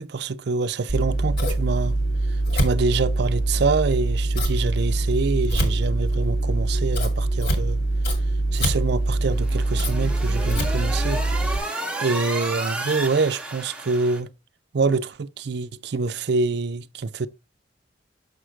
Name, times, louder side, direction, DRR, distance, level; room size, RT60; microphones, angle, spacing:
voice 1, 0.0-2.0 2.5-7.8 8.5-11.2 12.0-14.3 14.7-17.3, right 4 dB, 60° right, 0.5 m, -25 dB
Scissors, 0.9-11.6, right 2 dB, 70° left, 2.2 m, -23 dB
sound 1, 9.2-14.2, right 1 dB, 5° right, 0.8 m, -32 dB
6.6 x 6.3 x 3.2 m
head